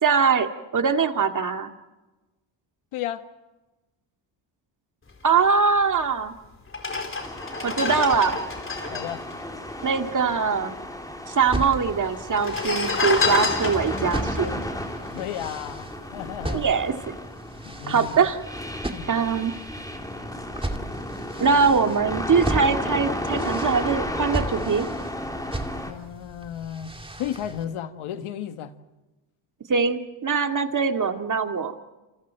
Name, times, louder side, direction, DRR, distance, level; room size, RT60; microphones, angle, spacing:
voice 1, 0.0-1.7 5.2-6.3 7.6-8.4 9.8-10.8 11.3-14.6 16.5-16.9 17.9-18.4 19.1-19.5 21.4-24.9 29.7-31.7, right 5 dB, 40° right, 2.2 m, -22 dB
voice 2, 2.9-3.2 8.9-9.2 15.1-16.7 17.6-18.2 18.9-19.2 25.8-26.9 27.2-28.7, left 10 dB, 85° left, 1.8 m, -33 dB
sound 1, 6.0-6.1 6.7-10.4 10.6-10.7 10.9-11.6 12.3-15.8 16.2-16.4, left 4 dB, 25° left, 4.3 m, -29 dB
sound 2, 7.2-25.9, left 1 dB, 5° left, 3.5 m, -33 dB
sound 3, 11.4-27.7, right 2 dB, 10° right, 2.4 m, -36 dB
28.5 x 28.0 x 4.6 m
cardioid pair, 100°, 48 cm